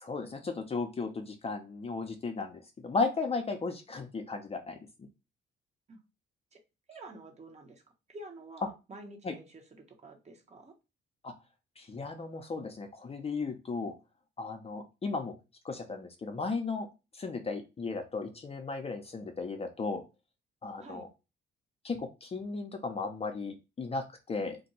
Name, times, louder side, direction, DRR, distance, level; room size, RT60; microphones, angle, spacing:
voice 1, 0.0-5.1 9.2-9.3 11.2-11.3 11.8-13.9 14.4-15.3 15.6-16.9 17.1-20.0 20.6-21.1 21.8-24.6, left 4 dB, 30° left, 0.5 m, -35 dB
voice 2, 6.9-7.8 8.1-10.7 20.8-21.1, right 2 dB, 35° right, 0.9 m, -49 dB
2.5 x 2.3 x 4.0 m
cardioid pair, 90°, 20 cm